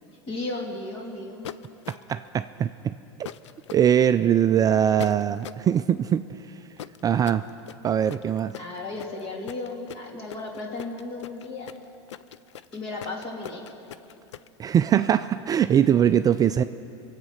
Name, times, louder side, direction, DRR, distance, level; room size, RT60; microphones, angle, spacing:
voice 1, 0.2-1.5 8.6-11.7 12.7-13.6, left 2 dB, 40° left, 0 dB, 3.1 m, -34 dB
sound 1, 1.4-2.3 3.2-3.8 5.0-5.7 6.8-14.5, left 10 dB, 85° left, 0.4 m, -40 dB
voice 2, 1.9-2.9 3.7-6.6 7.0-7.4 7.8-8.6 14.6-16.6, right 9 dB, 25° right, 10 dB, 0.3 m, -22 dB
24.0 x 8.2 x 5.7 m, 2.7 s
hypercardioid pair, 100°, 15 cm